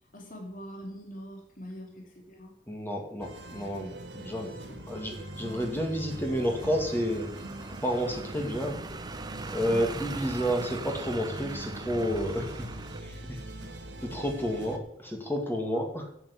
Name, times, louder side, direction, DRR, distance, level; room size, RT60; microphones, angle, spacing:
voice 1, 0.1-2.5 4.7-4.8 13.6-13.7 14.2-14.3, equal, 50° left, 1 dB, 2.8 m, -43 dB
voice 2, 2.7-4.5 4.9-7.3 7.8-8.8 9.5-12.7 13.0-13.4 14.1-16.1, equal, 10° left, 2 dB, 2.1 m, -30 dB
sound 1, 3.2-14.8, right 1 dB, 75° right, 1.8 m, -42 dB
sound 2, 4.9-13.0, right 3 dB, 25° right, 0.8 m, -41 dB
10.5 x 7.9 x 8.3 m, 0.75 s
head